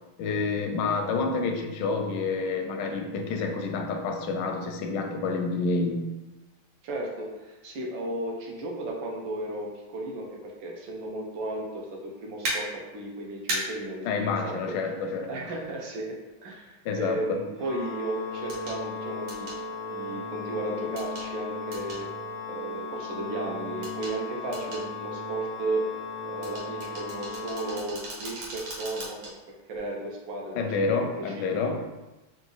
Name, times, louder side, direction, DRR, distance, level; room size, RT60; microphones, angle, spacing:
voice 1, 0.2-6.1 14.0-15.3 16.8-17.4 30.5-31.8, left 4 dB, 75° left, 3 dB, 1.1 m, -28 dB
voice 2, 6.8-12.7 12.9-14.6 15.3-16.1 16.4-19.5 19.9-22.1 22.5-25.8 26.2-29.2 29.7-30.5 31.0-31.7, right 2 dB, 70° right, -2 dB, 1.5 m, -34 dB
sound 1, 12.4-12.6 13.5-13.6 15.6-15.7 18.5-18.8 19.3-19.6 21.0-21.3 21.7-22.0 23.8-24.1 24.5-24.8 26.4-29.3 29.8-29.9, right 1 dB, 90° right, 2.0 m, -35 dB
Organ, 17.6-28.5, left 3 dB, 45° right, 0.4 m, -36 dB
4.1 x 2.5 x 3.8 m, 1.1 s
omnidirectional pair, 2.2 m